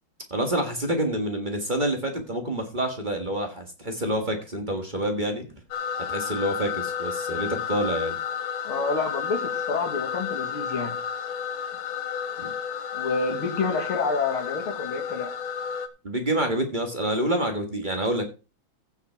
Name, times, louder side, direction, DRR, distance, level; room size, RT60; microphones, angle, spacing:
voice 1, 0.3-5.4 6.1-8.2 12.4-12.5 16.0-18.3, right 1 dB, 25° right, 4 dB, 1.6 m, -27 dB
sound 1, 5.7-15.9, left 7 dB, 75° left, 1.7 m, -32 dB
voice 2, 8.6-10.9 12.9-15.3, left 4 dB, 90° left, 4 dB, 2.9 m, -28 dB
15.0 x 5.7 x 4.5 m, 0.32 s
omnidirectional pair, 2.3 m